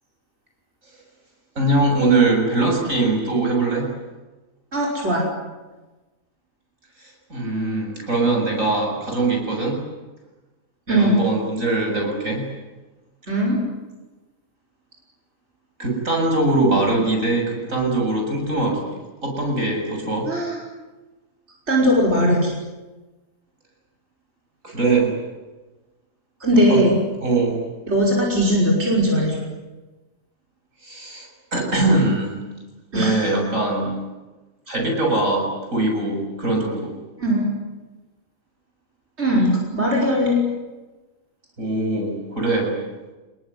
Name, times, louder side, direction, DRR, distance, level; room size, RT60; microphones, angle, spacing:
voice 1, 1.6-3.9 7.0-9.8 10.9-12.5 15.8-20.3 24.6-25.1 26.7-26.9 27.2-27.6 30.8-32.4 32.9-33.9 34.7-36.9 41.6-42.7, right 2 dB, 75° right, 1 dB, 7.9 m, -22 dB
voice 2, 4.7-5.3 10.9-11.2 13.3-13.6 20.3-20.6 21.7-22.4 26.4-26.9 27.9-29.4 32.9-33.2 37.2-37.4 39.2-40.4, equal, 55° right, -3 dB, 6.0 m, -19 dB
28.5 x 21.0 x 9.6 m, 1.2 s
omnidirectional pair, 1.4 m